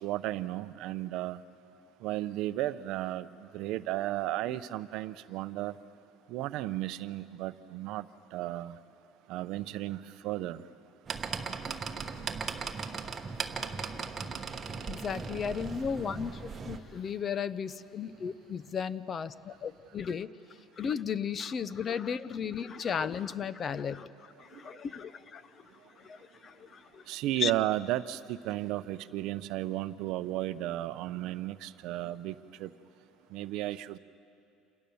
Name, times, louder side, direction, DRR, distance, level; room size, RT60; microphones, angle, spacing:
voice 1, 0.0-1.4 2.0-3.3 3.5-5.7 6.3-8.8 9.3-10.6 24.5-24.6 27.1-32.7 33.3-34.0, right 14 dB, 55° right, 13 dB, 0.7 m, -34 dB
sound 1, 11.1-16.8, right 5 dB, 20° right, 1.1 m, -38 dB
voice 2, 14.9-20.3 20.8-25.6 26.0-27.0 27.4-27.5, left 7 dB, 25° left, 16 dB, 0.5 m, -35 dB
28.0 x 27.5 x 7.0 m, 2.7 s
cardioid pair, 175°, 0 cm